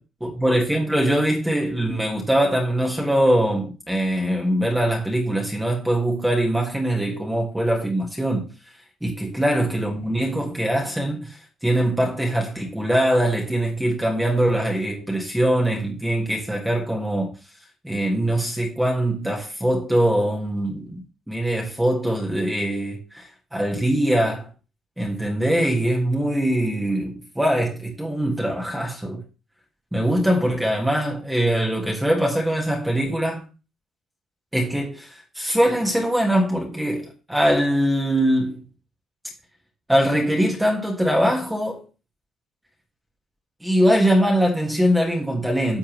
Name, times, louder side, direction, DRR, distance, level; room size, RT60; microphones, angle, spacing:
voice 1, 0.2-8.5 9.0-17.3 17.8-21.0 21.3-23.3 23.5-24.5 25.0-29.2 29.9-33.4 34.5-38.6 39.9-41.8 43.6-45.8, right 1 dB, 5° right, 1.5 m, -22 dB
10.0 x 6.9 x 3.1 m
cardioid pair, 145°, 0 cm